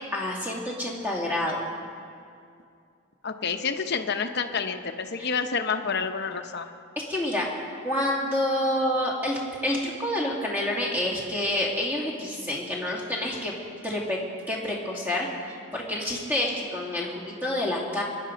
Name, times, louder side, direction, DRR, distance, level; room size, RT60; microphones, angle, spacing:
voice 1, 0.1-1.7 5.2-5.3 7.0-7.5 7.8-13.5 13.8-14.2 14.5-15.3 15.7-18.0, left 1 dB, 10° right, -3 dB, 2.5 m, -28 dB
voice 2, 3.2-6.7, left 5 dB, 50° left, 7 dB, 0.9 m, -29 dB
22.0 x 11.0 x 5.2 m, 2.4 s
head